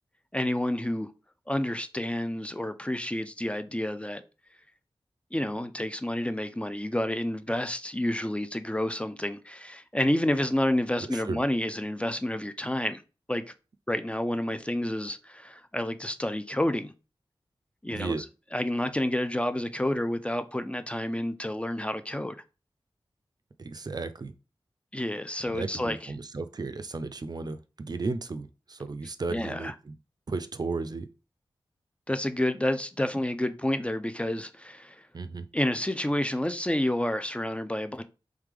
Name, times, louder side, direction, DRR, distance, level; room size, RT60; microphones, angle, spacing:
voice 1, 0.3-1.1 1.5-4.2 5.3-13.0 13.3-13.4 13.9-16.9 17.8-18.2 18.5-22.4 24.9-26.1 29.3-29.7 32.1-35.1 35.5-38.0, left 1 dB, 15° left, 0.4 m, -29 dB
voice 2, 11.1-11.4 17.9-18.2 23.6-24.3 25.5-29.9 30.3-31.1 35.1-35.5, right 3 dB, 45° right, 0.4 m, -34 dB
3.5 x 3.2 x 3.4 m
wide cardioid pair, 80°, 9 cm